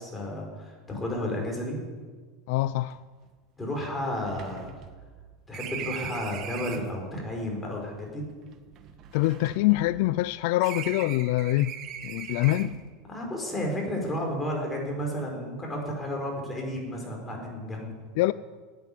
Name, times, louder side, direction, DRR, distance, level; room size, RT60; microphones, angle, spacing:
voice 1, 0.0-1.8 3.6-4.7 5.5-8.2 12.3-12.4 13.1-18.0, left 1 dB, 10° left, 4.6 m, -32 dB
voice 2, 2.5-3.0 9.1-11.7 12.0-12.8 18.2-18.3, left 17 dB, 65° left, 0.4 m, -24 dB
sound 1, 2.9-3.0 3.2-3.3 3.7-7.0 7.9-10.3 10.6-12.9, right 9 dB, 40° right, 1.4 m, -40 dB
12.5 x 9.4 x 9.9 m
supercardioid pair, 140°, 0 cm